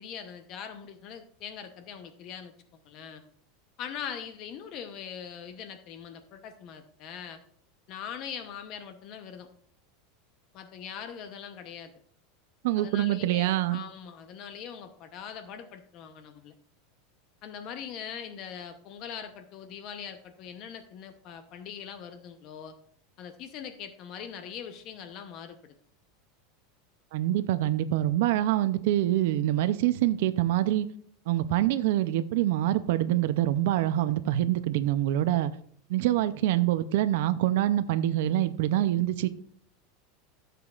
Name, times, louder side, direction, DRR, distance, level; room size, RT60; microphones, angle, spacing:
voice 1, 0.0-2.5 2.8-3.2 3.8-7.4 7.9-9.5 10.5-11.9 12.8-16.5 17.4-22.7 23.2-25.8, left 8 dB, 45° left, 0.8 m, -42 dB
voice 2, 12.6-13.8 27.1-30.9 31.3-35.5 35.9-39.3, right 13 dB, 70° right, 0.5 m, -25 dB
15.0 x 6.8 x 2.4 m
supercardioid pair, 150°, 0 cm